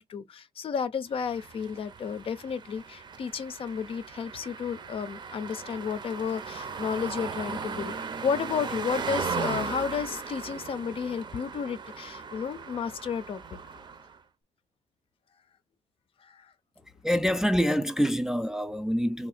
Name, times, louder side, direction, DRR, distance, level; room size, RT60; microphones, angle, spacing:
voice 1, 0.0-8.0 8.2-13.4 16.2-16.5, left 6 dB, 45° left, 0.6 m, -32 dB
sound 1, 1.2-14.2, right 5 dB, 35° right, 0.7 m, -37 dB
voice 2, 17.0-19.3, equal, 5° right, 0.4 m, -26 dB
3.6 x 2.7 x 4.1 m
cardioid pair, 140°, 13 cm